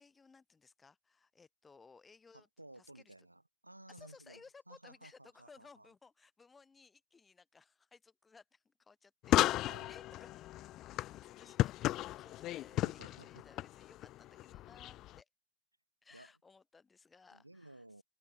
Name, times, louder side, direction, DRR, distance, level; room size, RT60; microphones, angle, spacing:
voice 1, 0.0-2.5 2.7-3.1 3.9-9.4 9.9-15.3 16.0-17.8, left 4 dB, 15° left, 4.8 m, -61 dB
voice 2, 2.3-5.9 9.7-9.9 10.9-11.0 12.8-13.5 16.1-16.3 17.3-18.0, right 1 dB, 85° right, 2.5 m, -56 dB
sound 1, 9.2-15.2, left 15 dB, 35° left, 0.3 m, -35 dB
open air
figure-of-eight pair, 90°, 0 cm